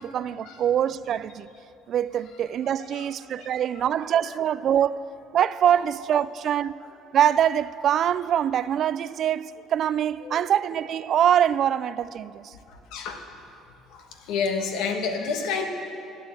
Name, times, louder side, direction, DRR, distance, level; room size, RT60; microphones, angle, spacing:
voice 1, 0.0-1.5 1.9-6.8 7.1-12.5, right 10 dB, 55° right, 0.3 m, -24 dB
voice 2, 2.8-4.0 4.3-4.4 5.6-5.8 6.1-6.2 10.2-10.5 12.7-13.2 13.9-15.7, left 5 dB, 80° left, 1.5 m, -31 dB
11.5 x 10.5 x 7.7 m
supercardioid pair, 90°, 0 cm